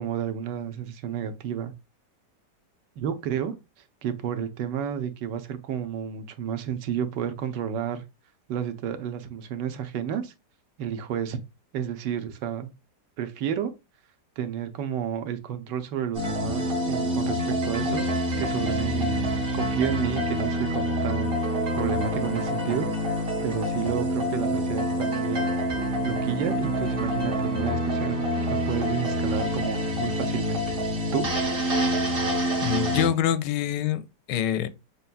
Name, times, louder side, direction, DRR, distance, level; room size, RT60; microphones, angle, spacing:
voice 1, 0.0-1.7 3.0-3.5 4.0-8.0 8.5-10.3 10.8-11.4 11.7-12.7 13.2-13.7 14.4-18.1 18.4-19.3 19.5-21.4 21.8-22.9 23.4-25.6 26.0-30.7 31.1-31.3, right 8 dB, 85° right, 1.3 m, -31 dB
sound 1, 16.1-33.1, equal, 35° right, 1.2 m, -27 dB
voice 2, 32.6-34.0 34.3-34.7, left 10 dB, 85° left, 1.2 m, -25 dB
6.7 x 2.3 x 2.4 m
omnidirectional pair, 1.8 m